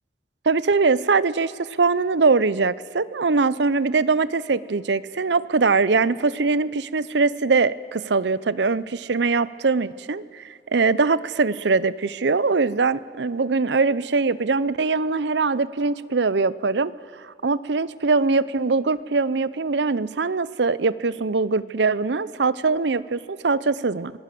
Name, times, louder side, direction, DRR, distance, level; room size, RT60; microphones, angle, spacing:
voice 1, 0.5-16.9 17.2-24.1, right 4 dB, 75° right, 18 dB, 0.7 m, -22 dB
25.0 x 18.5 x 7.7 m, 2.3 s
head